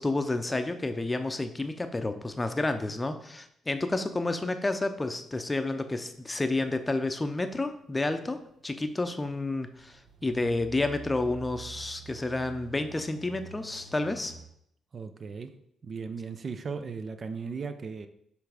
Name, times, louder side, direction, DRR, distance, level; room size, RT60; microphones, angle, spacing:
voice 1, 0.0-8.4 8.6-14.3, left 2 dB, 20° left, 8 dB, 0.6 m, -30 dB
sound 1, 5.9-6.4 6.7-14.5, right 6 dB, 75° right, 0.8 m, -48 dB
voice 2, 14.9-15.6 15.8-18.1, right 5 dB, 45° right, 9 dB, 0.5 m, -37 dB
7.0 x 3.4 x 4.9 m, 0.71 s
cardioid pair, 90°, 0 cm